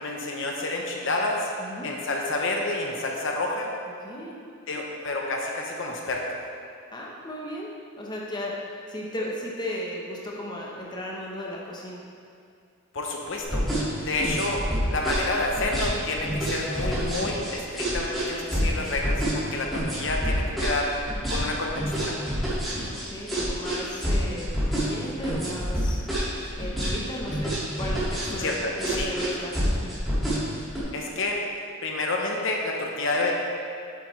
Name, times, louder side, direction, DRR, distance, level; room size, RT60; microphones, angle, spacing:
voice 1, 0.0-1.5 1.8-3.7 4.7-6.2 12.9-13.6 14.0-14.6 14.9-20.9 21.3-22.2 28.4-29.1 30.9-31.4 31.8-33.3, left 2 dB, 60° left, 0 dB, 0.8 m, -29 dB
voice 2, 1.6-1.9 4.0-4.4 6.9-7.7 8.0-12.0 22.7-26.0 26.6-29.5, equal, 20° left, -3 dB, 0.9 m, -35 dB
sound 1, 13.4-30.8, equal, ahead, 2.0 m, -27 dB
8.2 x 8.1 x 3.2 m, 2.4 s
head